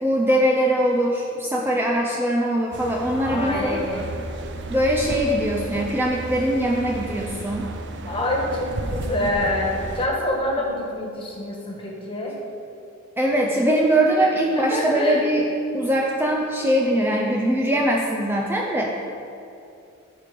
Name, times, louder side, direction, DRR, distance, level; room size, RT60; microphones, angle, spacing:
voice 1, 0.0-3.8 4.7-7.7 9.1-9.3 13.2-15.5 15.7-18.9, right 1 dB, 10° right, -1 dB, 0.6 m, -22 dB
sound 1, 2.7-10.1, right 2 dB, 60° right, 0.6 m, -33 dB
voice 2, 3.1-4.0 8.1-12.4 14.5-15.2, left 1 dB, 25° left, -1 dB, 1.6 m, -26 dB
12.5 x 5.1 x 5.1 m, 2.8 s
head